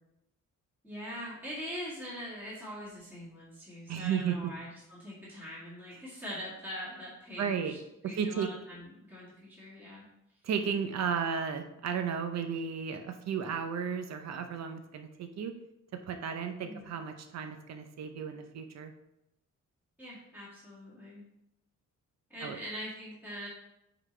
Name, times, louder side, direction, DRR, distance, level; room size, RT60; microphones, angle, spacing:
voice 1, 0.8-7.8 8.0-10.1 16.6-16.9 20.0-21.2 22.3-23.5, equal, 5° right, -8 dB, 2.0 m, -43 dB
voice 2, 3.9-4.5 7.4-7.7 8.1-8.5 10.4-15.5 16.1-18.9 22.4-22.6, right 7 dB, 60° right, 6 dB, 0.7 m, -34 dB
9.6 x 4.0 x 3.3 m, 0.85 s
wide cardioid pair, 160°, 31 cm